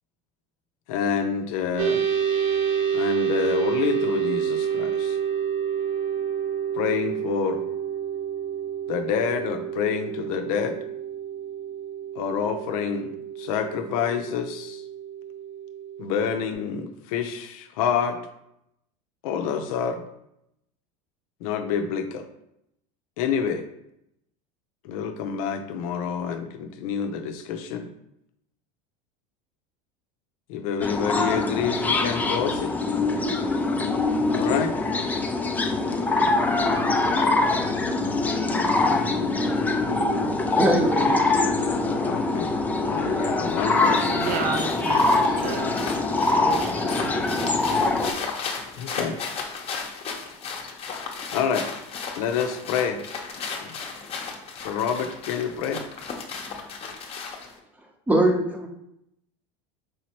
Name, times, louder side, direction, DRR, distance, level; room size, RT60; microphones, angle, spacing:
voice 1, 0.9-2.0 2.9-5.2 6.7-7.6 8.9-10.8 12.2-13.1 13.4-14.8 16.0-18.2 19.2-20.0 21.4-22.3 23.2-23.7 24.8-27.9 30.5-32.7 34.3-34.7 42.0-42.5 42.9-44.6 48.8-49.2 51.3-51.7 52.2-53.0 54.6-55.8, left 7 dB, 75° left, 0.6 m, -27 dB
sound 1, 1.8-16.5, right 8 dB, 75° right, 1.0 m, -29 dB
sound 2, 30.8-48.1, left 2 dB, 10° left, 0.4 m, -23 dB
voice 2, 40.6-41.1 58.1-58.7, right 1 dB, 10° right, 0.8 m, -21 dB
sound 3, 43.5-57.6, left 5 dB, 35° left, 0.8 m, -35 dB
voice 3, 44.2-45.7 46.0-47.2, right 5 dB, 50° right, 0.6 m, -33 dB
4.7 x 3.1 x 2.9 m
supercardioid pair, 120°, 18 cm